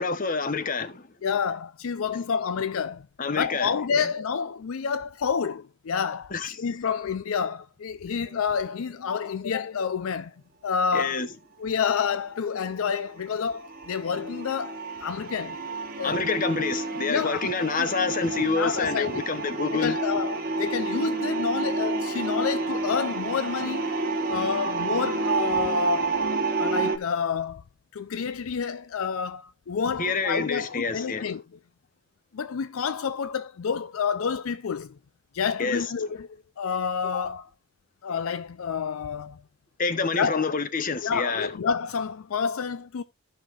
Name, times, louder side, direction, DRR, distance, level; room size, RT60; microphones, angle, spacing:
voice 1, 0.0-1.1 3.2-4.0 6.3-6.6 10.9-11.3 16.0-20.0 30.0-31.3 35.6-35.9 39.8-41.5, left 4 dB, 40° left, 0.9 m, -27 dB
voice 2, 1.2-3.1 3.4-10.3 10.6-11.2 11.6-15.6 16.0-16.2 17.1-17.5 17.7-17.9 18.6-19.2 19.7-23.9 24.3-26.2 26.6-27.6 27.9-31.4 32.3-34.9 35.3-36.3 36.6-37.5 38.0-39.4 40.2-40.5 41.0-43.0, left 6 dB, 70° left, 0.4 m, -29 dB
sound 1, 8.3-8.6 13.2-27.0, right 3 dB, 40° right, 1.2 m, -29 dB
15.5 x 5.7 x 2.4 m
head